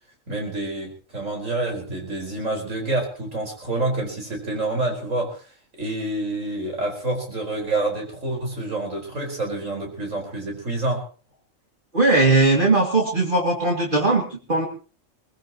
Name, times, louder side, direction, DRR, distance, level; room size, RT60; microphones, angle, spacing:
voice 1, 0.3-5.4 5.8-11.0, right 2 dB, 75° right, 1 dB, 5.1 m, -27 dB
voice 2, 11.9-14.7, right 2 dB, 40° right, 0 dB, 2.5 m, -19 dB
23.0 x 19.0 x 3.0 m, 0.36 s
omnidirectional pair, 1.3 m